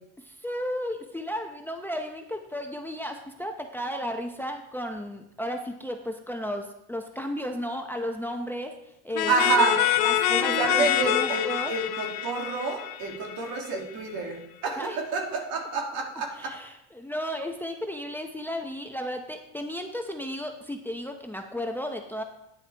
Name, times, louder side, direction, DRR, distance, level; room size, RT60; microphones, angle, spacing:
voice 1, 0.2-8.8 9.0-9.3 9.6-11.7 14.8-15.0 16.3-22.2, equal, 5° left, 4 dB, 0.7 m, -34 dB
sound 1, 9.1-13.7, left 13 dB, 80° left, 0.8 m, -26 dB
voice 2, 9.3-9.7 10.3-14.8 15.1-16.5, right 4 dB, 70° right, 0 dB, 2.7 m, -28 dB
9.9 x 9.0 x 3.4 m, 0.82 s
cardioid pair, 110°, 37 cm